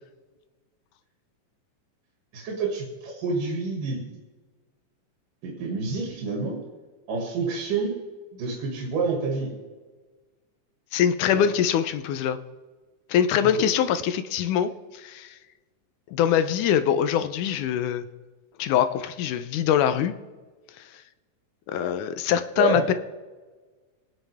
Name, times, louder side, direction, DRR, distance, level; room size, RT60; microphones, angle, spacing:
voice 1, 2.3-4.2 5.4-6.7 7.1-8.0 8.3-9.5 11.3-11.4 13.6-13.7 22.6-22.8, right 4 dB, 90° right, -1 dB, 3.8 m, -28 dB
voice 2, 10.9-12.4 13.1-15.4 16.1-18.1 18.6-20.1 20.8-20.9 21.7-22.9, left 9 dB, 80° left, 11 dB, 2.1 m, -23 dB
25.0 x 9.5 x 3.5 m, 1.3 s
omnidirectional pair, 3.7 m